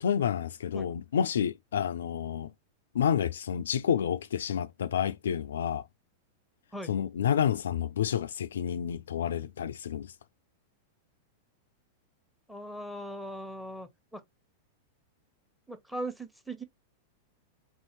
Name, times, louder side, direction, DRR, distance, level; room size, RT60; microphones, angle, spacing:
voice 1, 0.0-2.5 2.9-5.8 6.9-10.1, left 8 dB, 75° left, 0.3 m, -29 dB
voice 2, 12.5-14.2 15.7-16.6, right 1 dB, ahead, 1.0 m, -39 dB
3.9 x 2.7 x 2.9 m
hypercardioid pair, 100°, 0 cm